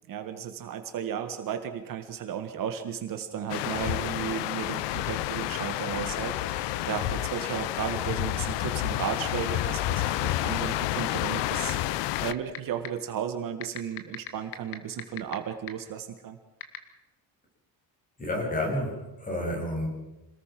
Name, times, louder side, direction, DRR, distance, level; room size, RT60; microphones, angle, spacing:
voice 1, 0.1-16.4, right 9 dB, 50° right, 7 dB, 1.8 m, -34 dB
sound 1, 3.5-12.3, left 14 dB, 80° left, 0.8 m, -30 dB
sound 2, 11.7-11.8 12.2-12.6 12.8-12.9 13.6-15.3 15.7-15.8 16.6-16.8, left 13 dB, 55° left, 2.3 m, -34 dB
voice 2, 18.2-19.9, left 1 dB, 20° left, 1 dB, 7.7 m, -30 dB
27.5 x 19.5 x 6.1 m, 1.0 s
cardioid pair, 165°, 42 cm